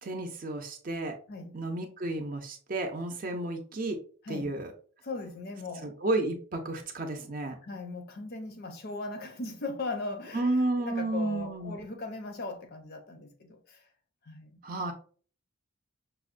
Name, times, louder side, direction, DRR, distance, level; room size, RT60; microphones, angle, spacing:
voice 1, 0.0-1.2 1.5-4.0 4.3-4.7 5.8-7.5 10.3-11.8 14.6-14.9, right 2 dB, 40° right, 0.6 m, -32 dB
voice 2, 5.0-6.0 7.6-13.8 14.3-14.6, left 3 dB, 45° left, 0.6 m, -38 dB
5.4 x 2.1 x 2.5 m
head